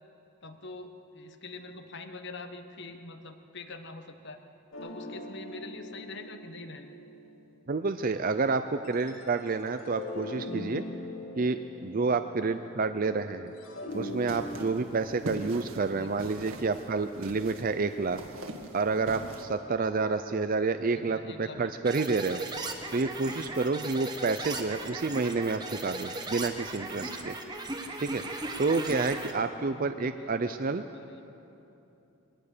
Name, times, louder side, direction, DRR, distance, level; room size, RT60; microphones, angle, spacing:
voice 1, 0.4-4.4 4.8-7.0 15.9-16.3 20.9-22.0 24.8-25.0 29.7-31.3, left 3 dB, 55° left, 7 dB, 1.3 m, -45 dB
sound 1, 4.7-7.9 8.8-13.2 13.5-17.7, left 2 dB, 75° left, 2.5 m, -43 dB
voice 2, 7.7-10.8 11.4-13.5 13.9-18.2 18.7-22.4 22.9-27.4 28.0-28.2 28.6-30.8, right 4 dB, 40° right, 9 dB, 0.5 m, -29 dB
sound 2, 13.9-19.4, right 1 dB, 75° right, 1.8 m, -43 dB
sound 3, 21.9-29.3, right 2 dB, 20° right, 1.3 m, -37 dB
22.0 x 18.0 x 6.8 m, 2.9 s
head